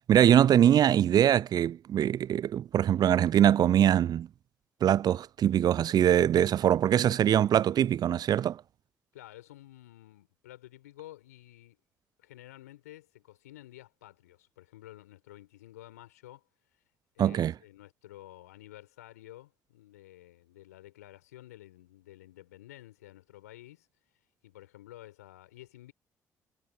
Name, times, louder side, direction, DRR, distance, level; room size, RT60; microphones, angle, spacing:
voice 1, 0.0-4.3 4.8-8.6 17.2-17.5, right 10 dB, 50° right, 0.5 m, -23 dB
voice 2, 9.1-11.8 12.2-16.4 17.1-23.9 24.4-25.9, left 15 dB, 80° left, 5.0 m, -51 dB
figure-of-eight pair, 45°, 9 cm